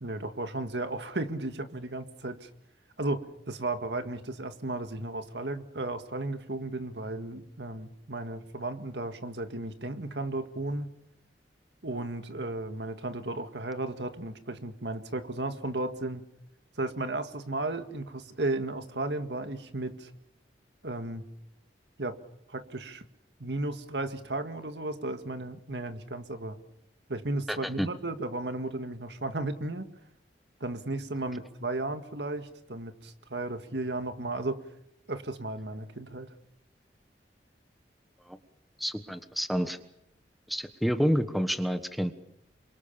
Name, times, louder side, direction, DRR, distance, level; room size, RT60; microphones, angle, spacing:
voice 1, 0.0-2.5 3.0-10.9 11.8-16.3 16.8-20.1 20.8-21.2 22.0-22.2 22.5-23.1 23.4-26.6 27.1-29.9 30.6-34.6 35.1-36.3, right 2 dB, 75° right, 8 dB, 1.9 m, -34 dB
voice 2, 27.5-27.9 38.3-38.4 38.8-39.8 40.5-42.1, equal, ahead, 9 dB, 1.3 m, -29 dB
28.0 x 24.0 x 7.1 m, 0.80 s
head